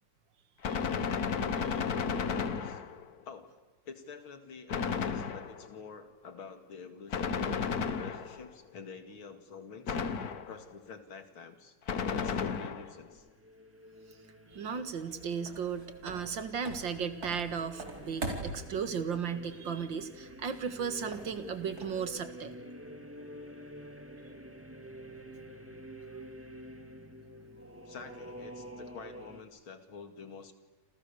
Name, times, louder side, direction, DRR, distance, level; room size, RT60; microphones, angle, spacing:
Gunshot gunfire, 0.6-3.1 4.7-5.7 7.1-8.5 9.9-10.7 11.9-13.0, left 6 dB, 50° left, 1.6 m, -33 dB
voice 1, 2.1-2.9 3.2-3.5 3.8-7.6 7.9-10.0 10.4-11.7 12.1-13.3 15.1-15.3 25.7-25.8 27.9-30.5, left 5 dB, 70° left, 9 dB, 3.0 m, -48 dB
sound 1, 13.0-29.4, right 1 dB, 5° right, 2.1 m, -49 dB
sound 2, 14.5-22.2, right 2 dB, 40° right, 4.7 m, -45 dB
voice 2, 14.5-22.5, right 6 dB, 60° right, 11 dB, 2.3 m, -35 dB
28.0 x 27.5 x 7.0 m, 1.2 s
omnidirectional pair, 2.4 m